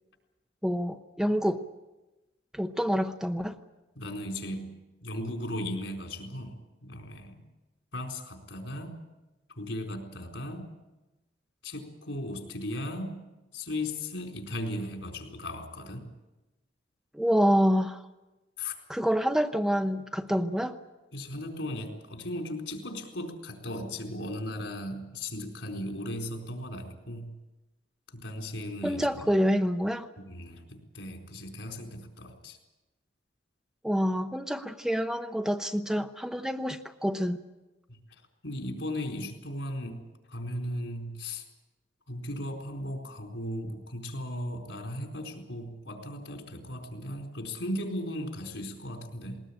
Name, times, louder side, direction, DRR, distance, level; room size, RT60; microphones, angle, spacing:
voice 1, 0.6-1.6 2.5-3.6 17.1-18.0 18.9-20.8 28.8-30.1 33.8-37.4, equal, 5° right, 8 dB, 0.8 m, -27 dB
voice 2, 4.0-4.8 5.0-7.4 7.9-9.0 9.6-10.7 11.6-13.2 13.5-16.1 18.6-18.8 21.1-27.4 28.1-29.2 30.2-32.6 37.9-38.0 38.4-40.0 40.3-41.5 42.1-49.4, left 1 dB, 85° left, 2 dB, 4.3 m, -37 dB
20.5 x 19.5 x 8.8 m, 1.1 s
head